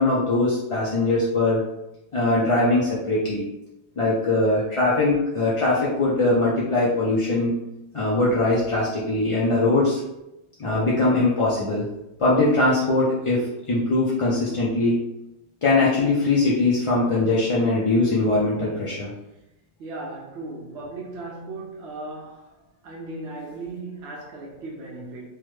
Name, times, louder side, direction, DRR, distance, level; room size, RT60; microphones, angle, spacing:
voice 1, 0.0-1.6 2.1-3.4 4.0-7.6 7.9-10.0 10.6-11.9 12.2-15.0 15.6-19.1, left 2 dB, 45° left, -6 dB, 0.4 m, -21 dB
voice 2, 19.8-22.5 22.8-25.3, right 2 dB, 80° right, -3 dB, 0.9 m, -36 dB
3.4 x 2.1 x 3.1 m, 0.92 s
omnidirectional pair, 1.1 m